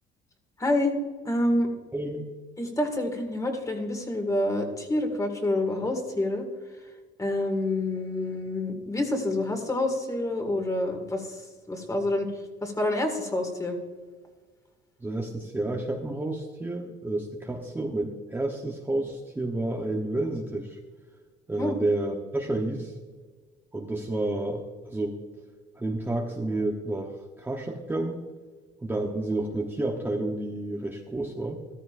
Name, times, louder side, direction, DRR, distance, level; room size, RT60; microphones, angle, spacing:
voice 1, 0.6-1.0 1.2-1.7 2.6-6.5 7.2-11.3 11.7-12.3 12.6-13.8 21.6-21.8, left 1 dB, 15° left, 4 dB, 2.0 m, -27 dB
voice 2, 1.9-2.3 15.0-20.8 21.5-22.9 23.7-25.2 25.8-28.2 28.8-31.6, right 2 dB, 10° right, 0 dB, 0.9 m, -30 dB
14.0 x 13.5 x 2.5 m, 1.4 s
cardioid pair, 120°, 19 cm